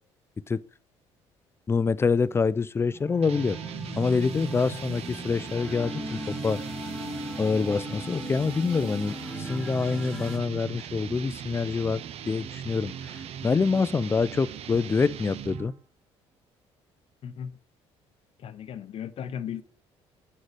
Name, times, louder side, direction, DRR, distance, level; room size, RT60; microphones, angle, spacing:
voice 1, 1.7-3.6 4.0-6.6 7.4-15.7, left 4 dB, 20° left, 0.3 m, -26 dB
sound 1, 2.8-10.4, left 1 dB, 5° left, 2.3 m, -38 dB
sound 2, 3.2-15.8, right 9 dB, 60° right, 0.6 m, -39 dB
voice 2, 18.4-19.6, left 8 dB, 55° left, 0.7 m, -36 dB
6.4 x 4.1 x 4.7 m
supercardioid pair, 85°, 12 cm